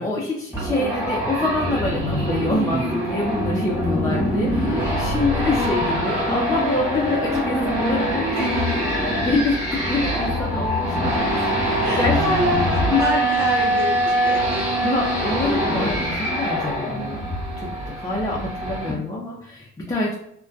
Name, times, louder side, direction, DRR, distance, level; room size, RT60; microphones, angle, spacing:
voice 1, 0.0-12.2 12.9-13.2 14.6-17.3 17.6-20.1, left 2 dB, 10° left, -4 dB, 0.4 m, -26 dB
sound 1, 0.5-18.9, equal, 5° right, 1.3 m, -23 dB
voice 2, 11.8-14.7, equal, 70° right, -2 dB, 0.5 m, -27 dB
2.5 x 2.2 x 2.2 m, 0.72 s
cardioid pair, 90°, 30 cm